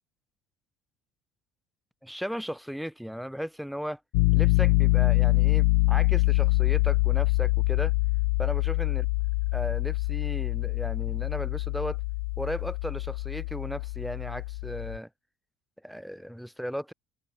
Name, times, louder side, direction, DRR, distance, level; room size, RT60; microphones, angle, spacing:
voice 1, 2.0-4.0 4.3-7.9 8.4-9.0 9.5-12.0 12.4-15.1 15.8-16.9, equal, ahead, 3.1 m, -36 dB
Piano, 4.1-15.0, left 28 dB, 75° left, 0.3 m, -25 dB
open air
hypercardioid pair, 70°, 0 cm